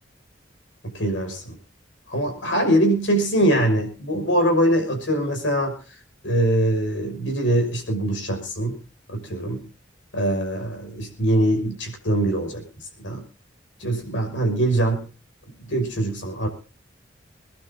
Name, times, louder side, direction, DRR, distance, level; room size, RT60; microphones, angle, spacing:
voice 1, 0.9-1.6 2.1-6.0 6.2-8.8 9.1-9.6 10.1-12.6 13.0-13.2 13.8-15.0 15.7-16.5, right 1 dB, 90° left, 4 dB, 6.2 m, -23 dB
27.5 x 12.0 x 2.8 m, 0.38 s
head